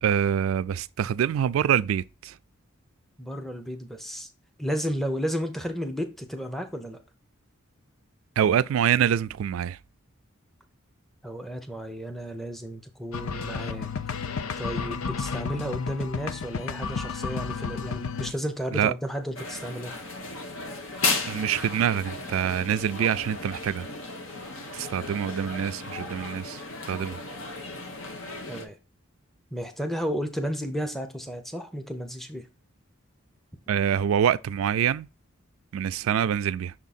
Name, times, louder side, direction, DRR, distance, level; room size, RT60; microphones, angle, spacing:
voice 1, 0.0-2.4 8.4-9.8 18.7-18.9 21.3-23.9 24.7-27.2 33.7-35.1 35.7-36.7, right 9 dB, 75° right, 0.3 m, -25 dB
voice 2, 3.2-4.3 4.6-7.0 11.2-13.9 14.6-19.9 28.5-28.8 29.5-32.4, equal, ahead, 0.6 m, -33 dB
sound 1, 13.1-18.3, left 5 dB, 90° left, 0.5 m, -32 dB
sound 2, 19.4-28.7, left 3 dB, 70° left, 1.1 m, -34 dB
6.3 x 3.6 x 4.1 m
head